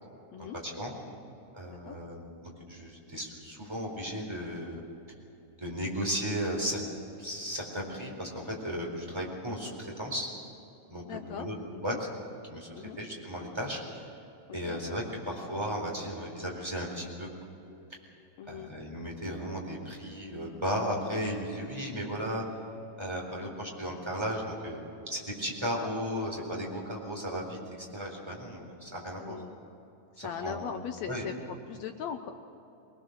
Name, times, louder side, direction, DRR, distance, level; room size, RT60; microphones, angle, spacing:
voice 1, 0.4-0.9 1.5-4.8 5.6-6.8 7.2-10.3 10.9-11.0 11.3-11.5 11.8-11.9 12.5-14.0 14.5-17.3 18.5-22.4 23.0-24.8 25.1-29.4 30.2-30.7 31.1-31.3, equal, 10° right, -1 dB, 3.8 m, -35 dB
voice 2, 1.7-2.0 11.0-12.0 12.7-13.0 14.5-14.8 18.4-18.7 23.3-23.6 29.2-29.6 30.1-32.3, left 8 dB, 75° left, 7 dB, 1.7 m, -40 dB
24.0 x 20.0 x 6.6 m, 2.9 s
omnidirectional pair, 3.8 m